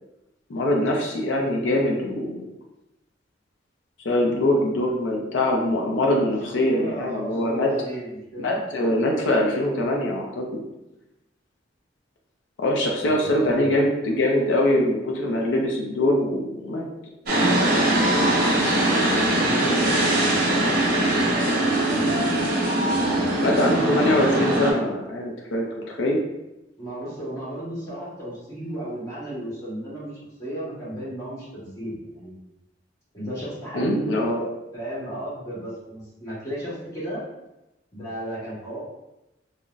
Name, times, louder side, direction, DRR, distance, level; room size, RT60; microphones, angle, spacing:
voice 1, 0.5-2.5 4.0-7.7 8.4-10.4 12.6-16.9 23.4-26.2 33.7-34.4, left 1 dB, 80° left, 0 dB, 0.5 m, -23 dB
voice 2, 6.4-8.6 13.0-13.7 18.6-18.7 19.2-20.2 20.5-21.4 21.7-22.2 22.9-23.8 26.8-30.1 30.4-32.4 33.1-34.1 34.7-37.2 37.9-38.8, right 1 dB, 20° left, -8 dB, 1.2 m, -34 dB
sound 1, 17.2-24.7, right 1 dB, 50° right, 0.8 m, -21 dB
Bowed string instrument, 19.5-24.6, left 1 dB, 70° right, 0.3 m, -37 dB
3.8 x 2.1 x 2.4 m, 0.92 s
head